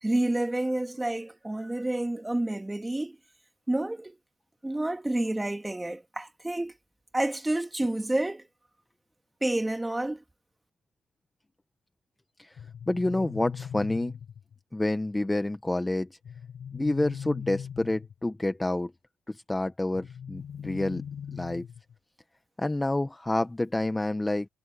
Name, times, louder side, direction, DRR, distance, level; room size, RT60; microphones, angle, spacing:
voice 1, 0.0-3.2 3.7-4.2 4.6-6.7 7.1-8.4 9.4-10.2, right 1 dB, 10° right, 2.4 m, -29 dB
sound 1, 12.6-14.6 16.2-18.3 19.9-21.9, left 8 dB, 55° left, 5.2 m, -40 dB
voice 2, 12.9-14.1 14.7-16.1 16.7-18.9 19.3-21.0 21.3-21.7 22.6-24.5, left 2 dB, 15° left, 1.2 m, -28 dB
cardioid pair, 90°, 0 cm